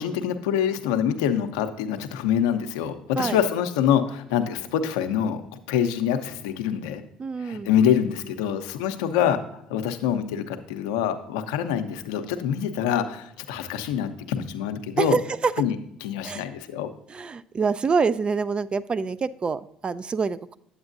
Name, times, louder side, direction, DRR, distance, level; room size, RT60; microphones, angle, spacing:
voice 1, 0.0-7.0 7.4-15.2 15.6-16.9, left 9 dB, 85° left, 8 dB, 0.6 m, -25 dB
voice 2, 7.2-7.7 15.0-15.5 16.2-16.5 17.1-20.6, right 5 dB, 35° right, 16 dB, 0.4 m, -26 dB
8.7 x 8.1 x 2.6 m, 0.75 s
hypercardioid pair, 65°, 3 cm